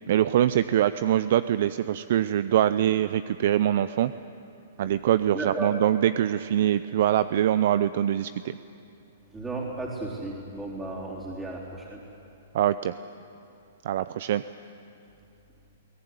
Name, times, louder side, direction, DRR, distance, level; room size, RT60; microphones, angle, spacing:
voice 1, 0.1-4.1 4.8-8.6 12.5-12.9 13.8-14.4, right 11 dB, 60° right, 14 dB, 0.5 m, -23 dB
voice 2, 5.3-5.7 9.3-12.0, right 2 dB, 10° right, -6 dB, 3.9 m, -34 dB
21.5 x 18.0 x 9.7 m, 2.7 s
hypercardioid pair, 120°, 0 cm